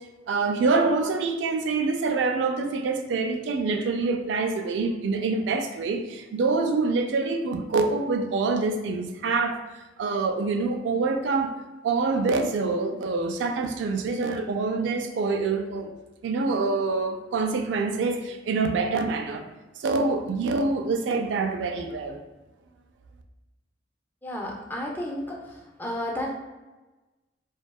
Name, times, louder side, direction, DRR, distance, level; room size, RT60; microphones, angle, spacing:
voice 1, 0.3-9.6 10.0-11.5 11.8-15.9 16.2-19.5 19.8-22.2, right 3 dB, 80° right, 5 dB, 0.3 m, -26 dB
voice 2, 24.2-25.4 25.8-26.3, left 1 dB, 10° left, -1 dB, 0.3 m, -31 dB
2.6 x 2.2 x 2.2 m, 1.1 s
head